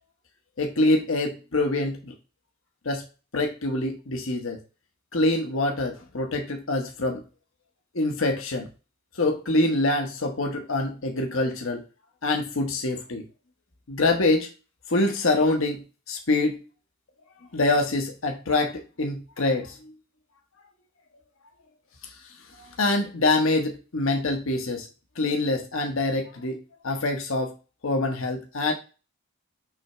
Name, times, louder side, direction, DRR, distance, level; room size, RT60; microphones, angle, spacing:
voice 1, 0.6-2.1 2.8-3.0 3.3-4.6 5.1-7.2 7.9-8.7 9.2-11.8 12.2-13.2 13.9-14.5 14.9-16.6 17.5-19.8 22.6-24.9 25.2-27.5 27.8-28.7, left 2 dB, 65° left, 4 dB, 1.0 m, -25 dB
6.1 x 3.4 x 5.4 m, 0.32 s
head